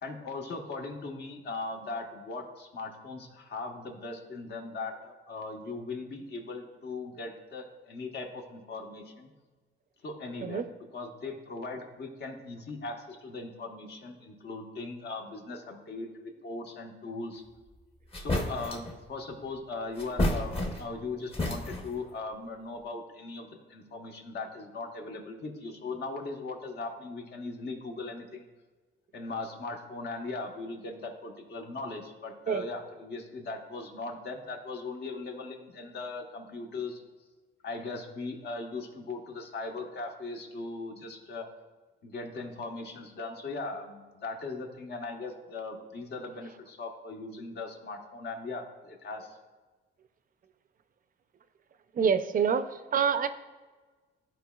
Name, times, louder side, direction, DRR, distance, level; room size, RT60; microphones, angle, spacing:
voice 1, 0.0-9.3 10.0-10.7 10.9-17.4 18.2-28.5 29.1-37.0 37.6-41.5 42.0-49.4, left 3 dB, 55° left, 2 dB, 1.2 m, -39 dB
sound 1, 17.7-17.8 18.1-18.9 20.0-21.0 21.3-22.0, left 1 dB, 30° left, 1.1 m, -31 dB
voice 2, 52.0-52.6 52.9-53.3, right 7 dB, 45° right, 11 dB, 0.5 m, -26 dB
13.0 x 4.5 x 2.3 m, 1.3 s
cardioid pair, 90°, 20 cm